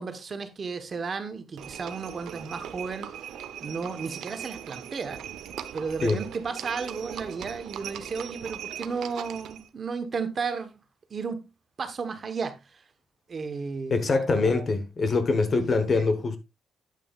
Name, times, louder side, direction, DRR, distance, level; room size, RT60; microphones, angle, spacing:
voice 1, 0.0-3.1 3.6-5.2 5.7-10.8 11.1-11.4 11.8-12.8 13.3-14.7 15.6-16.1, right 5 dB, 30° right, 1.0 m, -34 dB
Livestock farm animals working animals, 1.6-9.7, right 10 dB, 90° right, 0.7 m, -39 dB
voice 2, 13.9-16.4, left 3 dB, 30° left, 0.9 m, -24 dB
9.2 x 8.8 x 2.3 m
wide cardioid pair, 180°, 0 cm